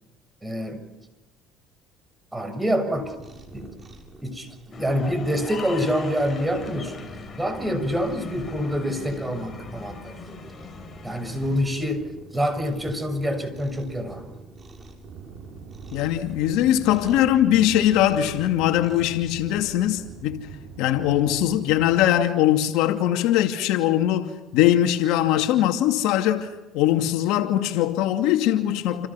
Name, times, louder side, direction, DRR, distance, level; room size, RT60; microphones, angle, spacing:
voice 1, 0.4-0.8 2.3-3.1 3.5-3.7 4.2-10.5 11.0-12.0 12.3-14.6, equal, 10° right, 6.5 m, -27 dB
Cat, 2.9-19.1, right 2 dB, 25° right, 7.2 m, -46 dB
sound 1, 4.7-11.6, left 5 dB, 30° left, 5.1 m, -40 dB
sound 2, 15.0-22.1, right 6 dB, 70° right, 5.9 m, -43 dB
voice 2, 15.9-20.5 20.8-29.1, left 12 dB, 75° left, 2.5 m, -21 dB
29.0 x 29.0 x 6.0 m
supercardioid pair, 100°, 0 cm